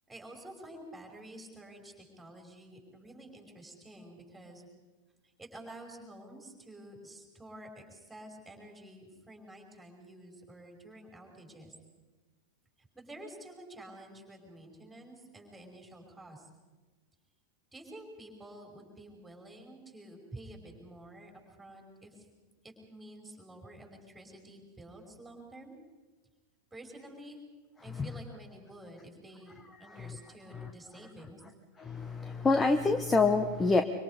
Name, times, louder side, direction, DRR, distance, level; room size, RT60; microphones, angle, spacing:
voice 1, 0.1-4.7 5.4-11.7 12.9-16.5 17.7-21.3 21.6-22.3 22.6-25.7 26.7-27.4 27.8-31.4, right 1 dB, 5° right, 2 dB, 5.3 m, -50 dB
voice 2, 29.8-30.7 31.8-33.8, left 3 dB, 15° left, 8 dB, 1.1 m, -28 dB
25.5 x 24.5 x 5.1 m, 1.3 s
figure-of-eight pair, 90°, 0 cm